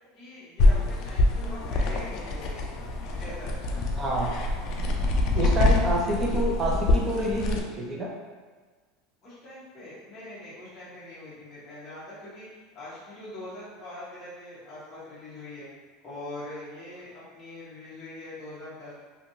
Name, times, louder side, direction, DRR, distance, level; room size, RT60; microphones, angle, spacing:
voice 1, 0.1-4.0 9.2-15.7 16.0-18.9, left 1 dB, 20° left, -11 dB, 0.8 m, -43 dB
sound 1, 0.6-7.6, left 2 dB, 40° left, 0.3 m, -25 dB
voice 2, 4.0-4.3 5.3-8.1, equal, 20° right, -2 dB, 0.5 m, -27 dB
2.9 x 2.6 x 2.7 m, 1.4 s
supercardioid pair, 165°, 0 cm